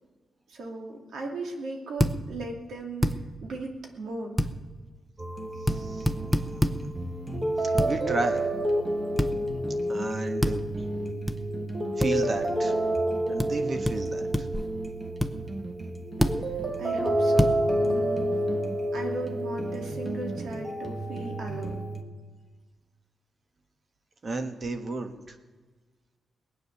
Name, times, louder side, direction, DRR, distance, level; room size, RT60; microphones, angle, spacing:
voice 1, 0.5-4.4 16.8-17.5 17.8-18.4 18.9-21.8, right 2 dB, 75° right, 2 dB, 2.6 m, -37 dB
sound 1, 2.0-2.2 3.0-3.2 4.4-4.5 5.7-5.8 6.1-6.8 7.8-7.9 9.2-9.3 10.4-10.6 11.3-11.4 12.0-12.1 13.4-13.5 13.8-14.0 14.3-14.6 15.2-15.3 16.2-16.4 17.4-17.6, equal, ahead, 0.7 m, -24 dB
sound 2, 5.2-22.0, right 1 dB, 20° right, 1.4 m, -29 dB
voice 2, 5.7-6.9 7.6-8.5 9.9-10.7 12.0-12.7 13.3-14.2 24.2-25.3, right 2 dB, 35° right, 7 dB, 1.4 m, -33 dB
20.0 x 9.2 x 6.9 m, 1.3 s
wide cardioid pair, 125°, 0 cm